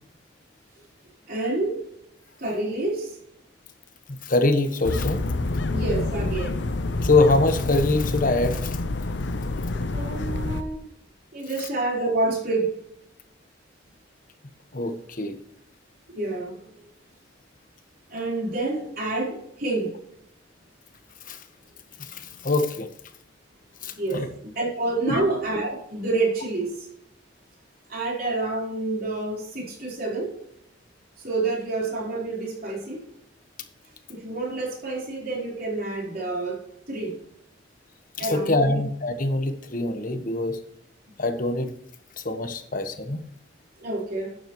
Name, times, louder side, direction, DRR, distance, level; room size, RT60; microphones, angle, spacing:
voice 1, 1.3-1.8 2.4-3.2 5.7-6.6 9.7-10.9 11.3-12.8 16.1-16.7 18.1-19.9 22.1-22.4 24.0-26.9 27.9-30.3 31.2-33.0 34.1-36.6 36.9-37.2 38.2-38.8 43.8-44.3, right 2 dB, 50° right, -3 dB, 4.2 m, -28 dB
voice 2, 4.2-5.2 7.0-8.8 14.7-15.4 21.3-21.4 22.0-22.9 23.8-24.3 25.1-25.3 38.2-40.6 41.2-41.7 42.2-43.2, left 2 dB, 45° left, 7 dB, 1.3 m, -24 dB
sound 1, 4.8-10.6, left 2 dB, 65° left, 0.7 m, -27 dB
12.0 x 9.0 x 3.1 m, 0.72 s
head